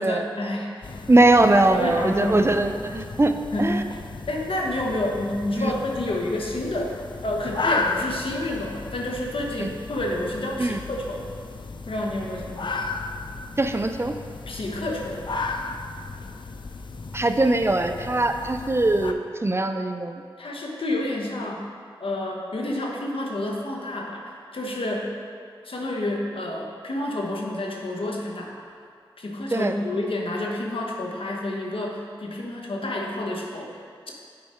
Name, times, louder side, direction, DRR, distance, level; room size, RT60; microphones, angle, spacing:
voice 1, 0.0-1.0 1.4-2.5 3.5-3.8 4.3-6.9 7.2-11.3 11.9-12.9 14.5-15.2 20.4-21.7 22.0-25.1 25.6-28.6 29.2-34.1, left 1 dB, 70° left, -1 dB, 1.1 m, -29 dB
sound 1, 0.8-19.1, left 3 dB, 55° left, 0.5 m, -34 dB
voice 2, 1.1-3.3 3.6-3.8 5.6-5.7 9.6-9.7 10.6-10.8 13.6-14.1 17.1-20.2 29.5-29.7, right 2 dB, 25° right, 7 dB, 0.4 m, -21 dB
8.7 x 4.7 x 4.3 m, 2.2 s
cardioid pair, 50°, 9 cm